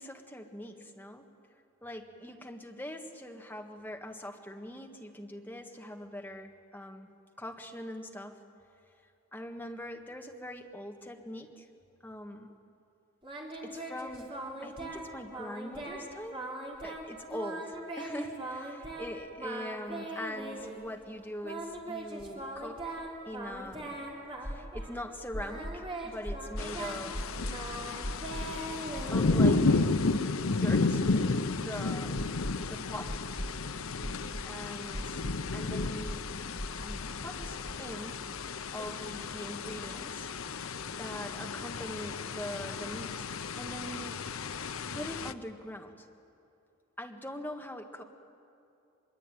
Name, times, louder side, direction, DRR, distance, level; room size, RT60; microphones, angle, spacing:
voice 1, 0.0-1.3 1.8-7.1 7.4-8.4 9.3-11.7 12.0-12.5 13.6-14.3 14.6-16.4 16.8-22.9 23.2-24.1 24.4-27.5 29.1-30.1 30.5-31.1 31.6-32.3 32.6-33.2 34.4-35.3 35.5-36.3 36.7-38.2 38.7-43.3 43.6-44.2 44.9-46.1 47.0-48.0, left 1 dB, 10° left, 2 dB, 1.8 m, -42 dB
Singing, 13.2-15.1 15.3-16.0 16.3-17.1 17.3-19.1 19.4-20.8 21.4-25.0 25.3-29.8, right 2 dB, 25° right, 3.8 m, -41 dB
sound 1, 20.6-20.7 21.0-21.1 22.6-23.8 24.4-24.9 25.3-25.8 26.2-26.7 27.1-27.6 28.0-28.5 29.0-29.7 30.0-30.1 32.1-32.7 33.1-33.5 34.0-34.5 34.9-35.4 35.8-36.2 36.6-37.0 37.4-37.7, equal, 40° left, 3.8 m, -38 dB
sound 2, 26.6-45.3, left 3 dB, 80° left, 0.8 m, -32 dB
24.0 x 22.5 x 9.3 m, 2.7 s
head